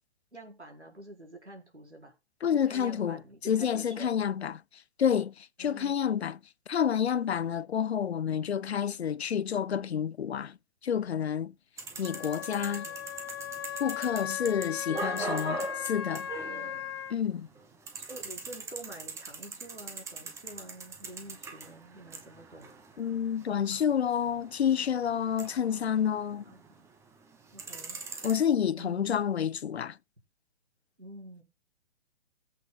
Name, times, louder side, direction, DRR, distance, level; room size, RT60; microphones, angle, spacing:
voice 1, 0.3-2.1 2.5-4.2 5.6-6.0 11.9-12.3 12.6-13.1 14.9-15.2 16.2-16.9 17.9-22.7 26.5-26.8 27.5-28.0 28.8-29.2 31.0-31.4, right 1 dB, 90° right, 4.3 m, -48 dB
voice 2, 2.4-4.6 5.0-6.4 6.7-10.6 10.8-11.5 12.0-12.9 13.8-16.3 17.1-17.5 23.0-26.4 28.2-30.0, left 8 dB, 75° left, 0.5 m, -29 dB
sound 1, 11.8-17.2 17.5-26.9 27.2-28.4, right 3 dB, 10° right, 1.2 m, -42 dB
Wind instrument woodwind instrument, 12.0-17.1, left 10 dB, 25° left, 0.4 m, -37 dB
19.5 x 8.3 x 2.3 m
figure-of-eight pair, 125°, 33 cm